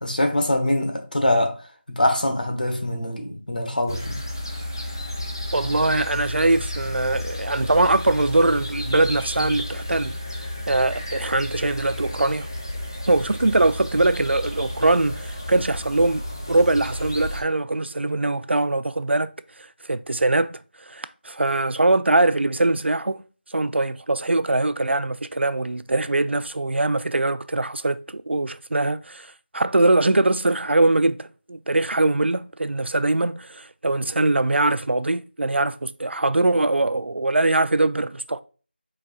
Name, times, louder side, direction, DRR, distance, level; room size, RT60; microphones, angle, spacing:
voice 1, 0.0-4.2, left 1 dB, 50° left, 1.0 m, -23 dB
sound 1, 3.9-17.4, left 1 dB, 20° left, 0.5 m, -32 dB
voice 2, 5.5-12.5 13.1-19.3 19.6-20.6 20.9-23.2 23.5-38.4, right 2 dB, 90° right, 0.4 m, -22 dB
5.3 x 4.0 x 2.3 m
figure-of-eight pair, 180°, 6 cm